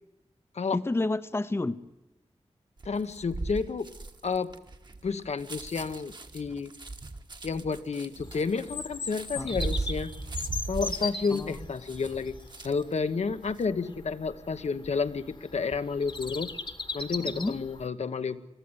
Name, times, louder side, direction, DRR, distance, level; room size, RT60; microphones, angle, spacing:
voice 1, 0.7-1.8 9.3-9.6 11.3-11.7 17.2-17.6, left 2 dB, 20° left, 13 dB, 0.7 m, -30 dB
voice 2, 2.8-3.9 4.2-4.5 5.0-6.7 7.4-10.1 10.7-12.4 12.6-16.5 16.9-18.4, left 5 dB, 75° left, 9 dB, 1.1 m, -30 dB
sound 1, 2.8-13.0 13.3-13.7, right 2 dB, 40° right, 1.4 m, -38 dB
Bird vocalization bird call bird song, 8.2-17.9, left 3 dB, 45° left, 1.4 m, -39 dB
21.5 x 14.0 x 9.7 m, 0.97 s
wide cardioid pair, 115°, 11 cm